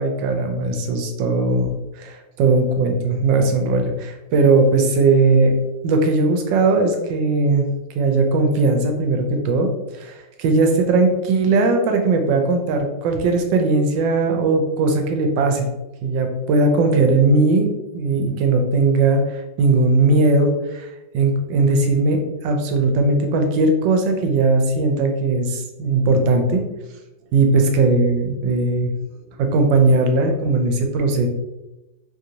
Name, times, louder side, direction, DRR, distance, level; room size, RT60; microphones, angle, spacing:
voice 1, 0.0-5.5 5.8-7.7 7.9-9.7 9.9-15.7 16.0-19.2 19.6-20.9 21.1-26.6 27.3-28.9 29.4-31.3, right 3 dB, 75° right, 4 dB, 1.2 m, -18 dB
3.2 x 2.5 x 2.7 m, 1.0 s
omnidirectional pair, 2.1 m